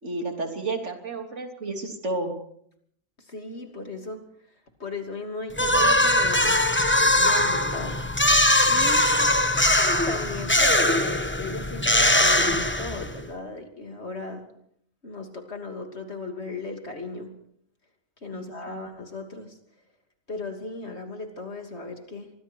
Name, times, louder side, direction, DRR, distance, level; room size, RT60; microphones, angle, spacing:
voice 1, 0.0-2.3 18.3-18.8, right 2 dB, 60° right, 4 dB, 3.4 m, -31 dB
voice 2, 3.2-4.2 4.8-6.6 7.0-8.3 8.7-9.1 10.0-14.4 15.0-17.4 18.2-19.6 20.3-22.3, left 3 dB, 55° left, 4 dB, 3.2 m, -36 dB
sound 1, 5.6-13.2, left 1 dB, 10° left, 1.1 m, -21 dB
26.0 x 23.0 x 4.6 m, 0.68 s
omnidirectional pair, 1.4 m